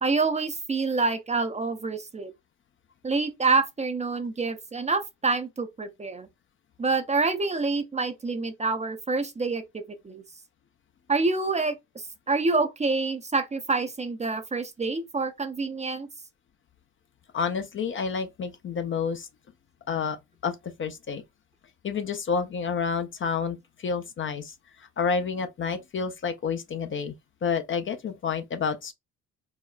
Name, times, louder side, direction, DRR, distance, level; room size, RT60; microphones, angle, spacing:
voice 1, 0.0-2.3 3.0-6.3 6.8-10.2 11.1-16.1, right 3 dB, 20° right, 0.5 m, -27 dB
voice 2, 17.3-19.3 19.9-20.2 20.4-21.2 21.8-24.5 25.0-27.1 27.4-28.9, left 5 dB, 35° left, 0.5 m, -29 dB
4.0 x 2.0 x 2.3 m
hypercardioid pair, 60°, 35 cm